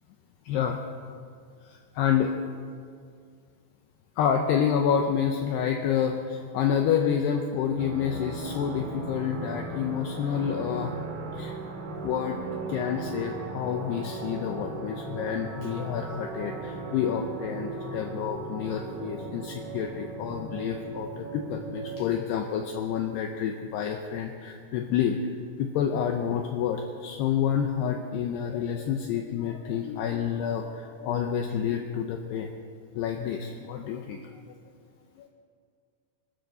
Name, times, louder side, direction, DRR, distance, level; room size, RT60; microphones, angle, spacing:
voice 1, 0.5-0.8 1.7-2.3 4.2-11.0 11.3-11.5 11.9-12.4 12.7-25.2 25.6-32.5 33.0-34.3 35.2-35.3, left 8 dB, 75° left, 3 dB, 2.6 m, -28 dB
sound 1, 7.8-22.0, right 3 dB, 65° right, 4.1 m, -37 dB
26.5 x 13.0 x 4.0 m, 2.2 s
omnidirectional pair, 5.4 m